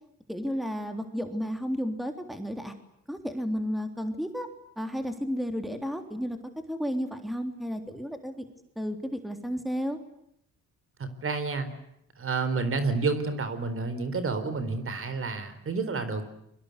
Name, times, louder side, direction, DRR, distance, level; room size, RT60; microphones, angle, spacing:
voice 1, 0.3-2.7 3.1-4.5 4.8-6.4 6.7-8.4 8.7-10.0, equal, ahead, 6 dB, 3.4 m, -32 dB
voice 2, 11.0-11.7 12.2-16.3, right 4 dB, 45° right, 11 dB, 4.1 m, -29 dB
29.5 x 23.5 x 8.2 m, 0.75 s
cardioid pair, 90°, 30 cm